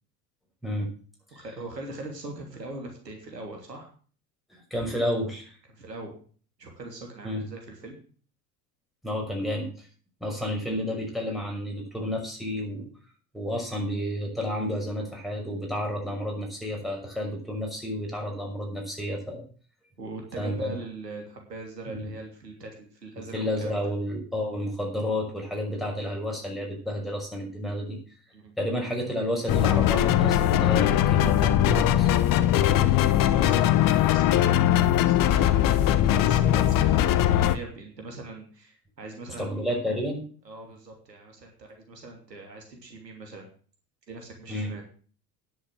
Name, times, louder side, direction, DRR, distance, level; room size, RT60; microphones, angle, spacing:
voice 1, 0.6-0.9 1.3-1.5 4.5-5.6 7.2-7.4 9.0-9.9 10.2-12.9 13.3-19.5 20.4-20.7 21.9-22.1 23.3-28.0 28.6-32.1 39.4-40.2 44.5-44.7, left 1 dB, ahead, -1 dB, 6.0 m, -31 dB
voice 2, 1.3-3.9 5.7-6.1 6.6-7.9 20.0-23.8 28.3-28.5 32.6-39.7 40.4-43.5 44.1-44.8, right 2 dB, 90° right, 2 dB, 3.1 m, -41 dB
sound 1, 29.5-37.6, left 12 dB, 45° left, 1.1 m, -21 dB
9.9 x 7.9 x 7.5 m, 0.43 s
hypercardioid pair, 75°, 48 cm